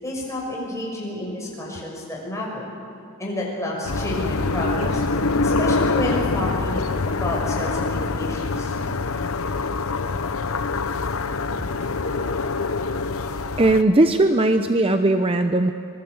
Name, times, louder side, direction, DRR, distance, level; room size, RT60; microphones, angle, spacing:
voice 1, 0.0-2.7 3.2-5.0 5.4-8.7, left 1 dB, 15° left, -3 dB, 6.0 m, -30 dB
sound 1, 3.9-13.8, left 3 dB, 75° left, 0.9 m, -25 dB
voice 2, 13.6-15.7, right 2 dB, 25° right, 7 dB, 0.7 m, -18 dB
26.0 x 21.0 x 7.9 m, 2.5 s
head